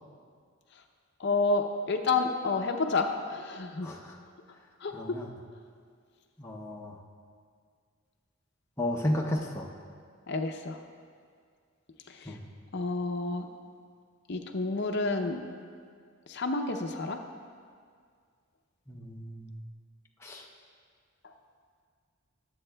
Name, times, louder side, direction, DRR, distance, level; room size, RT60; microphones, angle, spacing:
voice 1, 1.2-3.9 4.8-5.2 10.3-10.8 12.1-12.4 12.7-13.5 14.3-15.4 16.3-17.2 21.2-21.3, left 3 dB, 50° left, 4 dB, 0.5 m, -30 dB
voice 2, 3.8-4.2 4.9-5.3 6.4-7.0 8.8-9.7 12.2-12.4 18.9-19.5 20.2-20.5, left 1 dB, 10° left, -1 dB, 0.7 m, -33 dB
21.5 x 7.7 x 2.2 m, 2.1 s
head